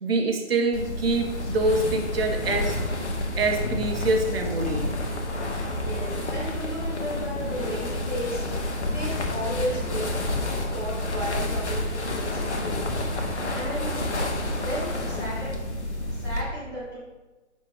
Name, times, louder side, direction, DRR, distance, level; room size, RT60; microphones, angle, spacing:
voice 1, 0.0-2.8 3.4-4.9, right 3 dB, 50° right, 5 dB, 0.7 m, -25 dB
sound 1, 0.7-16.4, left 1 dB, 60° left, 0.8 m, -29 dB
voice 2, 5.7-10.1 10.6-12.9 13.3-13.9 14.5-15.6 16.0-17.0, equal, 20° right, -11 dB, 0.5 m, -34 dB
5.1 x 2.2 x 4.7 m, 1.2 s
figure-of-eight pair, 140°, 38 cm